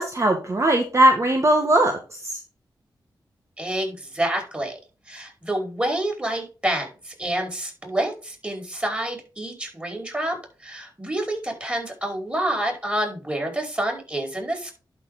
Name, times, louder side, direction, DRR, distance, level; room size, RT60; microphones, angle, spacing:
voice 1, 0.0-2.4, right 1 dB, 35° right, 3 dB, 1.8 m, -20 dB
voice 2, 3.6-4.8 5.1-14.7, right 1 dB, 15° right, 2 dB, 5.0 m, -28 dB
11.5 x 4.9 x 4.0 m, 0.33 s
cardioid pair, 60°, 8 cm